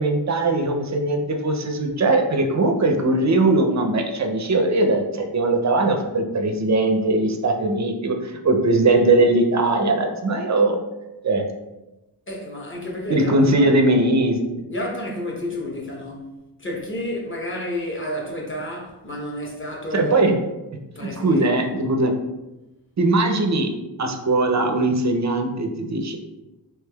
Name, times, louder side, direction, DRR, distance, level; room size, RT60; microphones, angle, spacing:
voice 1, 0.0-10.8 11.2-11.4 13.1-14.4 19.9-20.4 21.0-22.1 23.0-23.7 24.0-26.2, right 2 dB, 40° right, 0.4 m, -20 dB
voice 2, 12.3-13.8 14.7-20.2 20.9-21.7, left 1 dB, 25° left, 0.8 m, -30 dB
3.3 x 3.1 x 2.2 m
wide cardioid pair, 95°, 47 cm